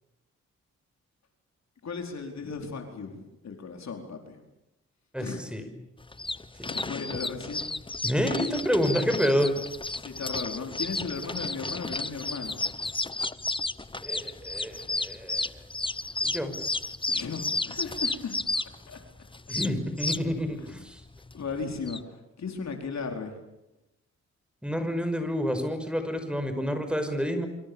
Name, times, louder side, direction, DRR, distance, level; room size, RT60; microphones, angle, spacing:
voice 1, 1.8-4.4 5.2-5.4 6.6-7.7 10.0-12.6 17.1-19.0 20.6-20.7 21.3-23.4, left 5 dB, 65° left, 4 dB, 4.5 m, -36 dB
sound 1, 6.0-22.0, left 3 dB, 15° left, 1.0 m, -33 dB
voice 2, 8.0-9.5 14.0-15.5 16.2-16.5 19.5-21.0 24.6-27.5, equal, 5° right, 8 dB, 5.9 m, -28 dB
27.5 x 26.0 x 7.2 m, 0.92 s
cardioid pair, 70°, 30 cm